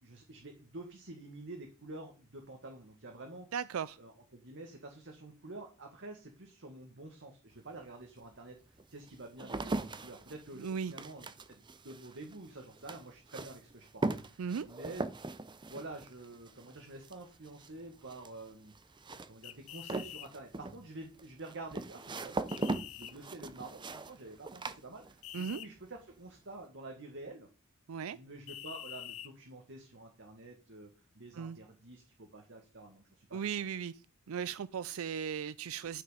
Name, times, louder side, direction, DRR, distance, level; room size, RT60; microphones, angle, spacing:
voice 1, 0.0-3.5 4.0-15.1 15.7-18.7 19.3-22.7 23.0-27.5 28.1-30.9 31.1-33.7, right 2 dB, 60° right, 1.7 m, -48 dB
voice 2, 3.5-4.0 10.6-10.9 14.4-14.7 25.3-25.6 27.9-28.2 31.3-31.6 33.3-34.0 34.3-36.0, right 7 dB, 75° right, 0.4 m, -37 dB
sound 1, 7.6-7.7 8.3-25.5 25.8-26.4, right 2 dB, 20° right, 0.6 m, -40 dB
sound 2, 19.4-20.3 22.5-23.1 25.2-25.7 28.5-29.3, left 12 dB, 75° left, 0.7 m, -46 dB
11.5 x 6.0 x 5.0 m
head